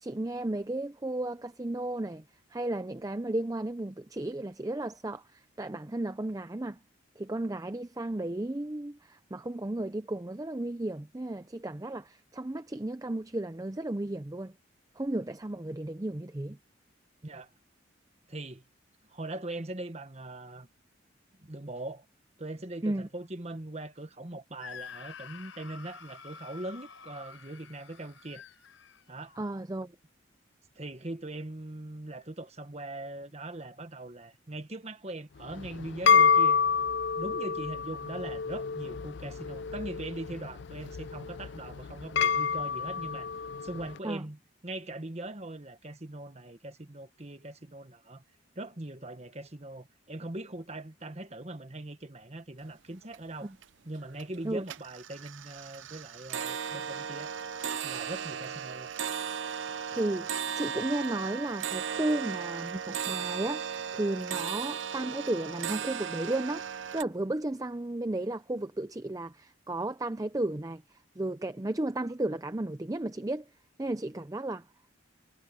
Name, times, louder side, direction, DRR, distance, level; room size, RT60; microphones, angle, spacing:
voice 1, 0.0-2.2 2.5-6.8 7.2-14.5 15.0-16.6 22.8-23.1 29.4-29.9 44.0-44.2 53.4-53.6 54.4-54.6 59.9-73.4 73.8-74.6, right 1 dB, 15° right, 0.5 m, -34 dB
voice 2, 18.3-18.6 19.1-20.7 21.4-22.0 22.4-28.4 29.1-29.3 30.7-36.6 37.1-43.3 43.6-48.2 48.5-53.5 53.8-57.3 57.8-58.9, right 1 dB, 35° right, 1.4 m, -41 dB
Screaming, 24.6-29.4, left 6 dB, 80° left, 5.3 m, -48 dB
sound 1, 35.4-43.9, left 6 dB, 60° left, 0.4 m, -28 dB
sound 2, 52.7-52.8 53.0-53.6 54.0-54.4 54.6-67.0, right 7 dB, 70° right, 0.5 m, -36 dB
head